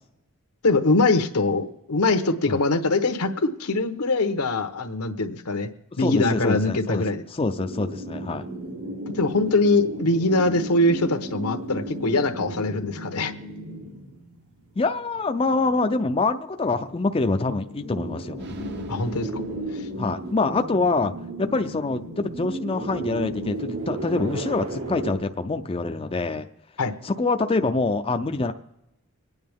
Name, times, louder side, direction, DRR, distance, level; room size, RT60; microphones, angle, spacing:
voice 1, 0.6-5.7 6.0-7.2 9.1-13.3 18.9-19.4 19.7-19.8 26.8-26.9, left 2 dB, 85° left, 7 dB, 1.1 m, -23 dB
voice 2, 6.0-7.0 7.3-8.5 14.8-18.5 20.0-21.1 21.4-26.5 27.0-28.5, left 3 dB, 25° left, 7 dB, 0.4 m, -25 dB
sound 1, 7.5-14.8 15.1-15.2 15.5-16.0 16.6-25.2, right 1 dB, 80° right, 2.1 m, -34 dB
sound 2, 18.4-20.6, right 2 dB, 50° right, 0.8 m, -44 dB
24.5 x 9.6 x 3.6 m, 0.92 s
head